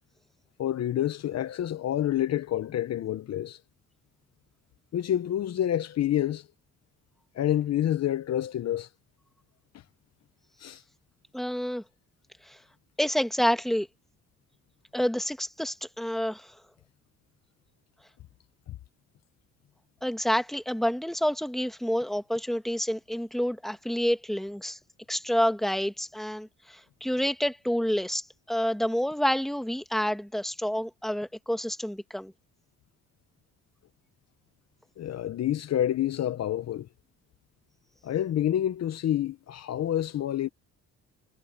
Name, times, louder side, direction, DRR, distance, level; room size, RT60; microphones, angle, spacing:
voice 1, 0.6-3.6 4.9-6.4 7.3-8.9 10.6-10.8 35.0-36.9 38.0-40.5, left 11 dB, 60° left, 0.8 m, -28 dB
voice 2, 11.3-11.8 12.5-12.6 13.0-13.9 14.9-16.6 20.0-24.8 25.1-32.3, equal, ahead, 1.7 m, -28 dB
cardioid pair, 90°, 30 cm